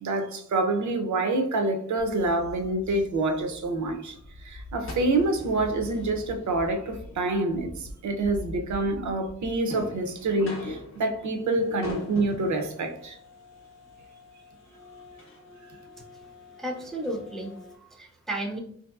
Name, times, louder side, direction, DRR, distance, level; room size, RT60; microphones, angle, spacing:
voice 1, 0.0-4.1 4.4-13.2, right 2 dB, 80° right, 0.5 m, -27 dB
sound 1, 2.0-17.8, left 2 dB, 45° left, 0.6 m, -43 dB
voice 2, 16.6-18.6, right 1 dB, ahead, 0.3 m, -34 dB
2.9 x 2.7 x 2.3 m
wide cardioid pair, 175°, 29 cm